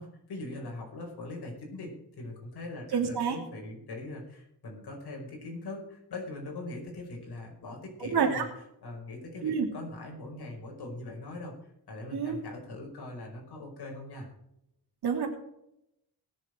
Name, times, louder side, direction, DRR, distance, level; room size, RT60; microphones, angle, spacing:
voice 1, 0.0-8.5 8.8-11.5 11.9-14.3, left 2 dB, 80° left, 0 dB, 5.2 m, -41 dB
voice 2, 2.9-3.4 8.0-8.4 9.4-9.7 12.1-12.4 15.0-15.3, right 6 dB, 80° right, 2 dB, 3.0 m, -28 dB
19.5 x 7.4 x 4.5 m, 0.81 s
wide cardioid pair, 140°, 39 cm